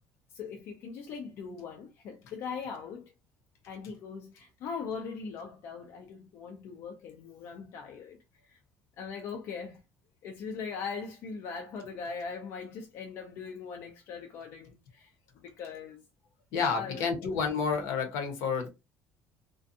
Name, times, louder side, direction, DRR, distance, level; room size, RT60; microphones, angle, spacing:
voice 1, 0.3-3.1 3.7-8.2 8.5-8.6 9.0-9.8 10.2-16.0 16.7-17.3, left 5 dB, 60° left, 0.5 m, -40 dB
voice 2, 16.5-18.7, left 5 dB, 75° left, 0.9 m, -30 dB
2.5 x 2.2 x 2.6 m
cardioid pair, 145°, 5 cm